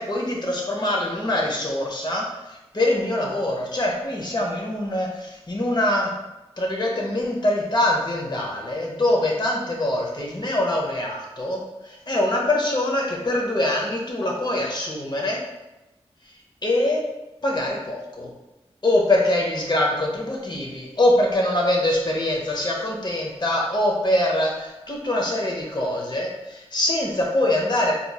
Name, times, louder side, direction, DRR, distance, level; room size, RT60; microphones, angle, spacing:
voice 1, 0.0-6.1 6.6-15.4 16.6-17.0 17.4-18.3 18.8-27.9, left 1 dB, 40° left, -1 dB, 0.8 m, -24 dB
4.2 x 3.0 x 2.3 m, 0.99 s
cardioid pair, 45°, 11 cm